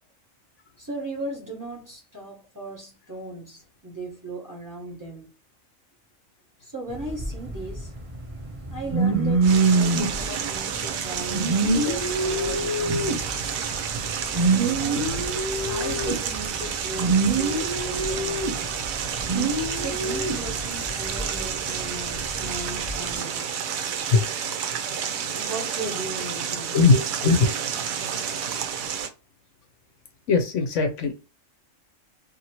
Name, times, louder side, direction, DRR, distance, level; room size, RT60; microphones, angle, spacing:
voice 1, 0.8-5.3 6.6-7.9 8.7-13.3 14.3-15.3 15.7-18.4 19.7-23.5 25.3-26.9, right 2 dB, 15° right, 0.9 m, -37 dB
sound 1, 6.9-21.5 21.9-23.1, right 3 dB, 35° right, 0.5 m, -25 dB
sound 2, 9.4-29.1, right 7 dB, 85° right, 1.0 m, -30 dB
voice 2, 26.7-27.5 30.3-31.1, left 4 dB, 70° left, 0.9 m, -20 dB
2.8 x 2.6 x 2.8 m
omnidirectional pair, 1.4 m